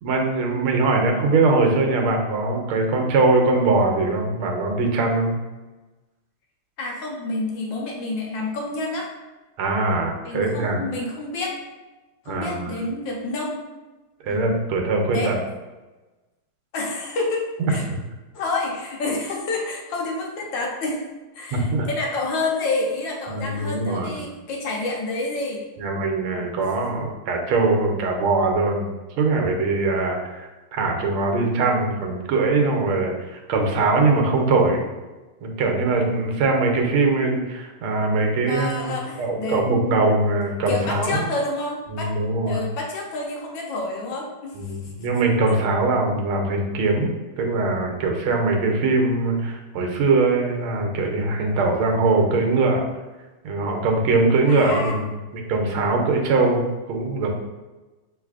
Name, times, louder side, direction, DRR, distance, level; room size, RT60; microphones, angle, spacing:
voice 1, 0.0-5.3 9.6-10.8 12.3-12.8 14.2-15.4 17.6-17.7 21.5-21.9 23.3-24.2 25.8-28.9 29.2-34.9 35.4-41.3 41.9-42.6 44.5-47.1 47.4-52.9 53.4-55.1 55.3-57.3, right 3 dB, 85° right, 2 dB, 1.6 m, -22 dB
voice 2, 6.8-9.1 10.2-11.5 12.2-13.6 14.3-14.5 15.1-15.3 16.7-17.8 18.3-21.0 21.4-25.6 26.3-26.7 38.5-39.6 40.7-42.1 42.5-44.5 45.5-45.6 54.5-55.0, left 2 dB, 70° left, -1 dB, 1.4 m, -28 dB
5.8 x 3.3 x 2.4 m, 1.2 s
omnidirectional pair, 2.3 m